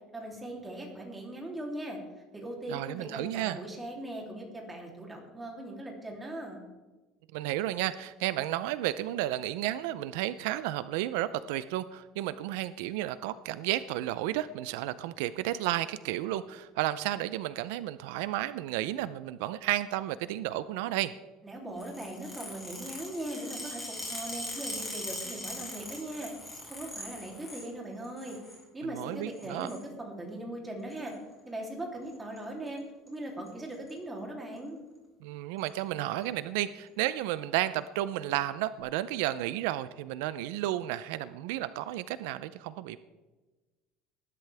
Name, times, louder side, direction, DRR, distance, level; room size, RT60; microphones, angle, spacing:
voice 1, 0.1-2.0 2.3-6.6 21.4-23.8 24.1-26.3 26.7-28.4 28.7-31.1 31.5-32.8 33.1-34.8, right 1 dB, 10° right, -1 dB, 3.1 m, -39 dB
voice 2, 2.7-3.6 7.3-21.1 28.8-29.7 35.2-43.0, right 14 dB, 85° right, 14 dB, 0.5 m, -32 dB
sound 1, 21.8-27.7 28.0-28.6 29.3-29.8 30.9-31.1 32.1-32.4 32.7-32.8 33.1-33.2 33.5-33.9 34.6-34.7 35.6-35.7, left 1 dB, 10° left, 4.4 m, -41 dB
19.5 x 11.5 x 3.5 m, 1.2 s
cardioid pair, 155°, 0 cm